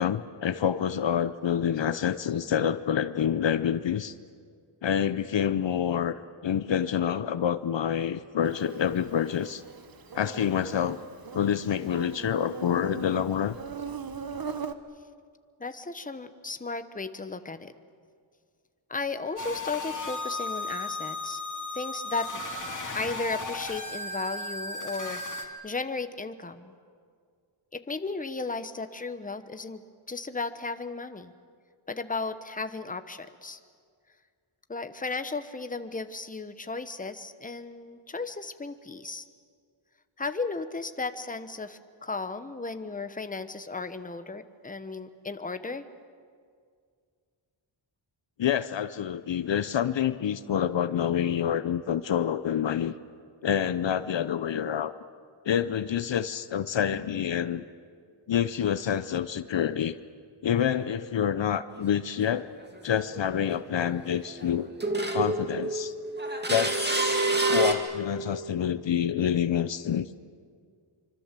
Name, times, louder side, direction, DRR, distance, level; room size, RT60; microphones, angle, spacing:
voice 1, 0.0-4.1 4.8-9.6 10.1-11.0 11.3-13.6 48.4-52.9 53.4-54.9 55.4-57.6 58.3-60.0 60.4-62.5 62.8-64.7 65.1-65.9 66.5-70.1, left 9 dB, 65° left, 13 dB, 0.8 m, -27 dB
Insect, 8.4-14.7, right 6 dB, 45° right, 1.2 m, -40 dB
voice 2, 15.6-17.7 18.9-21.4 21.7-22.4 22.9-26.7 27.7-31.3 31.9-33.6 34.7-39.3 40.2-45.8, left 3 dB, 15° left, 10 dB, 1.0 m, -35 dB
sound 1, 19.4-25.4, left 2 dB, 40° left, 2.4 m, -35 dB
sound 2, 61.7-61.8 63.1-63.2 63.6-64.5 64.8-67.7, right 2 dB, 20° right, 2.1 m, -27 dB
25.5 x 25.0 x 7.6 m, 2.1 s
wide cardioid pair, 120°, 48 cm